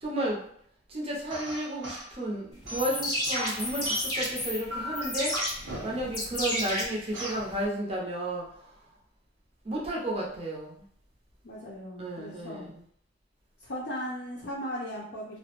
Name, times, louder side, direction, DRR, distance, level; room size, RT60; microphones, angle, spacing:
voice 1, 0.0-0.4 0.9-5.4 5.8-8.8 9.6-10.8 12.0-12.8, right 1 dB, 30° right, -3 dB, 0.6 m, -33 dB
sound 1, 1.3-2.1 2.7-4.3 4.7-6.2 7.1-7.5, right 1 dB, 75° right, 0.7 m, -38 dB
sound 2, 2.6-7.6, left 1 dB, 20° left, 0.7 m, -32 dB
voice 2, 11.4-12.7 13.6-15.4, equal, 60° left, -6 dB, 0.5 m, -37 dB
2.3 x 2.0 x 2.9 m, 0.65 s
head